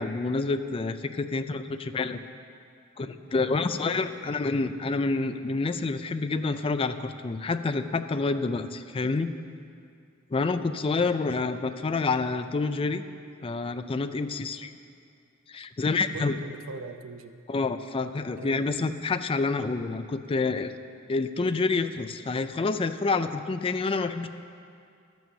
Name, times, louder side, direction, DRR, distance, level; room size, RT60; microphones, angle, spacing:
voice 1, 0.0-2.2 3.0-9.3 10.3-13.0 13.4-14.7 15.5-16.4 17.5-20.7 21.1-24.3, left 3 dB, 25° left, 10 dB, 0.4 m, -28 dB
voice 2, 3.7-4.4 10.9-11.1 16.1-17.4 18.4-18.7, right 4 dB, 90° right, 9 dB, 0.6 m, -42 dB
12.5 x 6.1 x 7.1 m, 2.3 s
head